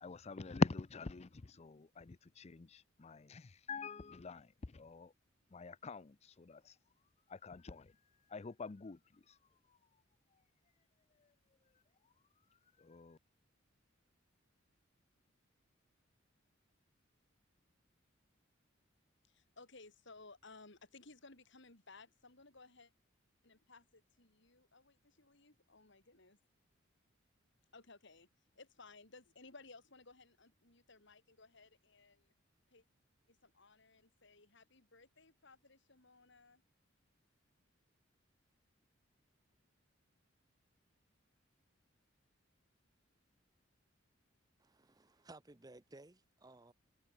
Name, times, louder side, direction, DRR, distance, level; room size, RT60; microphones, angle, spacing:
voice 1, 0.0-5.1 5.5-6.7 7.3-7.9 8.3-9.4 12.8-13.2, left 3 dB, 30° left, 0.5 m, -42 dB
voice 2, 19.2-22.9 23.4-26.4 27.7-28.3 28.6-32.4 32.7-32.9 33.3-36.6, left 3 dB, 60° left, 3.8 m, -60 dB
voice 3, 44.6-46.7, right 2 dB, 20° right, 0.8 m, -58 dB
head